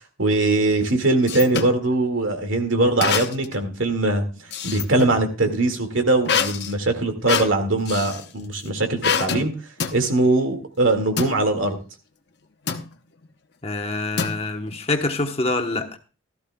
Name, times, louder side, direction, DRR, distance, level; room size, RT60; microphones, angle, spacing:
voice 1, 0.2-4.2 4.6-9.5 9.9-11.8, right 2 dB, 75° right, 2.0 m, -21 dB
sound 1, 0.7-1.8 3.0-3.6 4.0-5.2 6.2-8.3 9.0-9.5 9.8-10.0 11.2-11.4 12.7-12.9 14.2-14.7, left 6 dB, 55° left, 0.9 m, -26 dB
voice 2, 13.6-15.9, left 2 dB, 30° left, 1.0 m, -25 dB
16.5 x 13.5 x 2.3 m
head